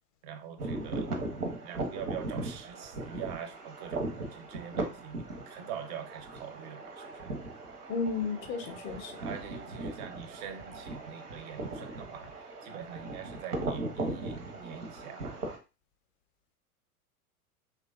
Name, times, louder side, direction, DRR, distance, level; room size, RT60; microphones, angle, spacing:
voice 1, 0.2-1.2 1.6-7.3 9.2-15.5, right 8 dB, 30° right, 0.4 m, -44 dB
sound 1, 0.6-15.6, right 2 dB, 85° right, 0.8 m, -38 dB
voice 2, 7.9-9.2, left 4 dB, 35° left, 0.5 m, -33 dB
3.0 x 2.3 x 2.3 m
figure-of-eight pair, 90°, 45 cm